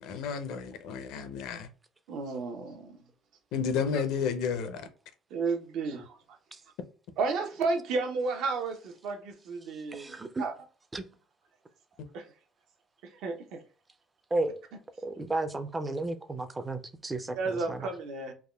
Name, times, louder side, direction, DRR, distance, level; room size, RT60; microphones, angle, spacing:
voice 1, 0.0-1.7 3.5-4.8, left 6 dB, 70° left, 0.5 m, -31 dB
voice 2, 2.1-2.9 5.3-6.2 7.2-10.5 12.1-12.3 13.1-13.6 17.3-18.3, right 4 dB, 70° right, 0.6 m, -32 dB
voice 3, 9.9-10.4 10.9-11.0 14.3-14.6 15.0-17.9, right 2 dB, 15° right, 0.3 m, -33 dB
3.4 x 2.1 x 2.2 m
cardioid pair, 125°, 0 cm